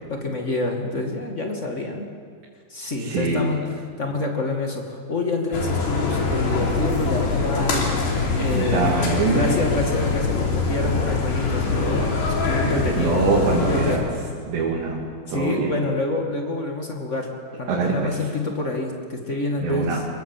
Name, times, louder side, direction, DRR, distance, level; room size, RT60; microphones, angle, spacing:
voice 1, 0.1-2.1 2.7-3.6 4.0-7.9 8.3-8.9 9.3-12.1 12.4-13.2 13.7-14.0 15.3-17.3 17.6-20.0, left 2 dB, 45° left, 2 dB, 0.9 m, -27 dB
voice 2, 3.0-3.5 8.6-9.4 13.0-14.0 14.5-15.8 17.7-18.2 19.6-20.1, right 4 dB, 80° right, -4 dB, 5.1 m, -23 dB
sound 1, 5.5-14.0, left 4 dB, 70° left, 5.3 m, -23 dB
25.5 x 23.0 x 7.6 m, 2.1 s
omnidirectional pair, 5.0 m